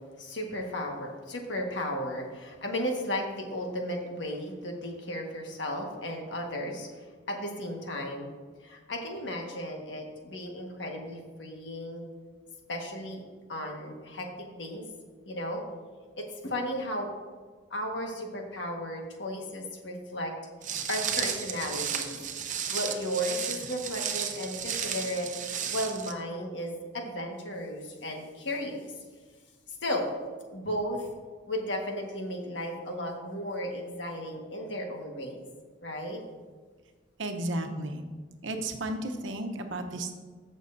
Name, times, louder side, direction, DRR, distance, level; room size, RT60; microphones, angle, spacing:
voice 1, 0.2-8.3 8.6-12.0 12.7-13.2 13.5-14.8 15.2-15.6 16.2-17.1 17.7-20.3 20.9-22.2 22.7-25.3 25.7-28.9 29.8-30.1 30.5-31.1 31.5-35.4 35.8-36.2, equal, 65° left, 1 dB, 1.5 m, -34 dB
Walk footsteps, 20.6-26.1, right 7 dB, 40° right, 0.8 m, -33 dB
voice 2, 37.2-38.1 38.4-40.2, right 1 dB, 85° right, 5 dB, 0.9 m, -33 dB
15.0 x 6.3 x 2.7 m, 1.5 s
head